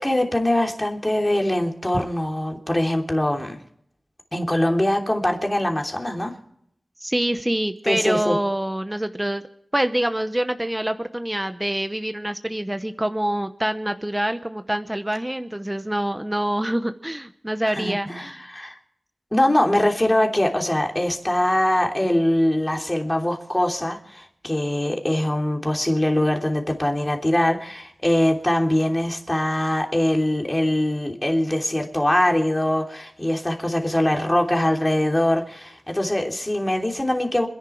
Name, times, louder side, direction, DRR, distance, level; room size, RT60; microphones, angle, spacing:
voice 1, 0.0-3.6 4.3-6.4 7.8-8.4 17.7-18.8 19.3-37.5, left 1 dB, 20° left, 2 dB, 3.2 m, -22 dB
voice 2, 7.0-9.4 9.7-18.4, right 1 dB, 15° right, 9 dB, 0.9 m, -25 dB
27.0 x 11.0 x 4.6 m, 0.71 s
wide cardioid pair, 65°, 0 cm